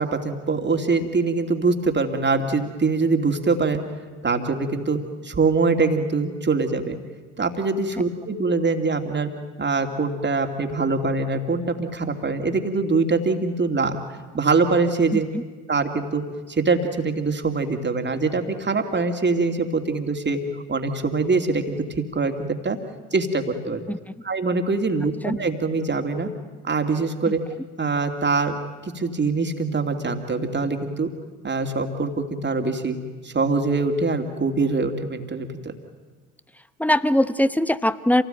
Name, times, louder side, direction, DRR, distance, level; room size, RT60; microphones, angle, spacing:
voice 1, 0.0-3.8 4.2-5.0 5.2-7.0 7.4-9.3 9.6-14.0 14.3-15.2 15.7-16.2 16.5-20.4 20.7-22.8 23.1-23.9 24.2-26.3 26.6-27.4 27.8-28.5 28.8-31.1 31.4-33.0 33.2-35.7, right 4 dB, 30° right, 5 dB, 2.9 m, -23 dB
voice 2, 15.1-15.4 23.9-24.0 25.2-25.4 36.8-38.2, left 1 dB, 5° left, 14 dB, 1.1 m, -21 dB
27.0 x 18.5 x 9.2 m, 1.4 s
hypercardioid pair, 50°, 35 cm